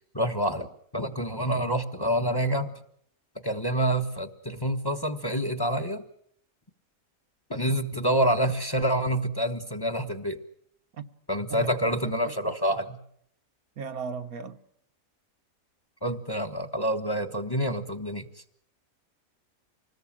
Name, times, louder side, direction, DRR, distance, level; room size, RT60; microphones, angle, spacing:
voice 1, 0.1-2.7 3.4-6.0 7.5-10.4 11.3-13.0 16.0-18.3, right 1 dB, 15° left, 1.3 m, -27 dB
voice 2, 11.5-12.5 13.8-14.6, right 5 dB, 80° right, 1.7 m, -38 dB
26.0 x 20.0 x 7.5 m
omnidirectional pair, 1.5 m